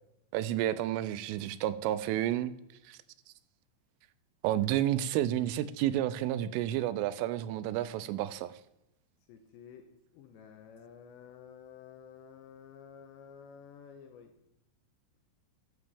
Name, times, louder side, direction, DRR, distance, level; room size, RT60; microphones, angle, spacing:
voice 1, 0.3-2.5 2.9-3.0 4.4-8.5, right 12 dB, 85° right, 3.0 m, -30 dB
voice 2, 9.3-14.4, left 7 dB, 75° left, 2.8 m, -52 dB
14.0 x 11.0 x 3.5 m
omnidirectional pair, 5.9 m